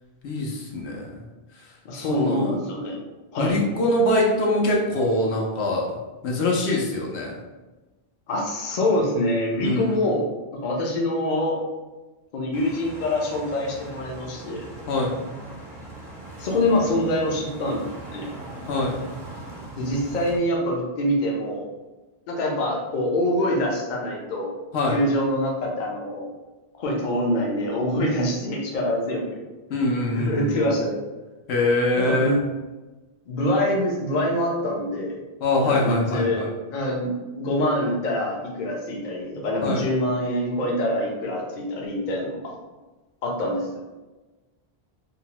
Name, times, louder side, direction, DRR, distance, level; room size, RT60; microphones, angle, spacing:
voice 1, 0.2-1.2 2.1-2.5 3.4-5.9 6.2-7.3 9.6-10.0 14.9-15.2 18.7-19.0 24.7-25.0 29.7-30.7 31.5-32.4 35.4-36.5 39.6-39.8, left 1 dB, 80° left, -1 dB, 0.9 m, -23 dB
voice 2, 1.8-3.0 3.3-3.6 8.3-10.2 10.6-11.6 12.3-14.7 16.4-18.3 19.8-21.7 22.3-24.5 24.9-26.3 26.8-29.4 29.7-29.8 30.1-31.0 32.0-32.4 33.3-35.2 35.6-36.4 36.7-42.5 43.2-43.7, left 1 dB, 55° left, -1 dB, 0.6 m, -25 dB
sound 1, 12.5-20.4, right 2 dB, 55° right, 0.7 m, -40 dB
2.7 x 2.0 x 2.9 m, 1.2 s
omnidirectional pair, 1.1 m